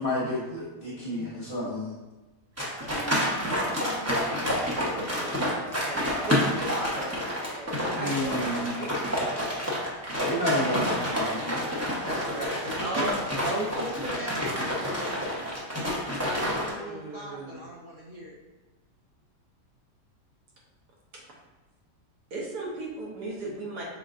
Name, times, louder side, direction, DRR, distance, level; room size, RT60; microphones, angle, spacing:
voice 1, 0.0-1.9 7.9-8.7 10.1-11.6, left 1 dB, 40° left, -7 dB, 1.1 m, -30 dB
sound 1, 2.6-16.7, equal, 20° right, 0.4 m, -29 dB
voice 2, 2.8-5.3 5.8-9.4 12.8-13.7 16.2-17.6 21.1-21.2 22.3-23.8, right 2 dB, 75° right, -3 dB, 1.5 m, -37 dB
voice 3, 12.0-13.1 13.4-15.7 16.2-18.3, right 1 dB, 50° right, -5 dB, 1.3 m, -37 dB
5.7 x 3.8 x 2.4 m, 1.1 s
omnidirectional pair, 1.8 m